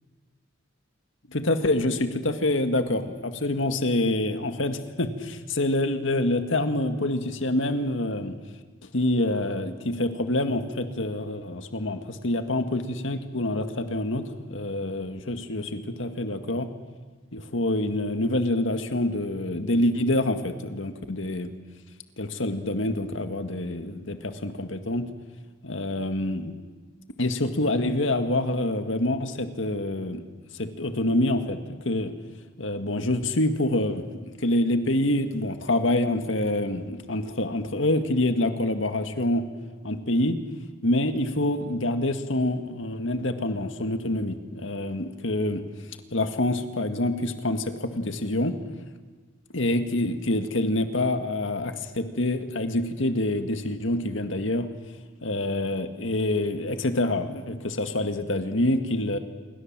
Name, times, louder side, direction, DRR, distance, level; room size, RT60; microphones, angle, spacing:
voice 1, 1.3-8.3 8.9-16.7 17.3-21.5 22.2-25.1 25.6-26.5 27.2-30.2 30.5-32.1 32.6-39.5 39.8-40.4 40.8-45.6 46.1-48.6 49.5-54.7 55.2-59.2, left 1 dB, 80° left, 8 dB, 1.9 m, -26 dB
28.0 x 22.5 x 7.5 m, 1.4 s
head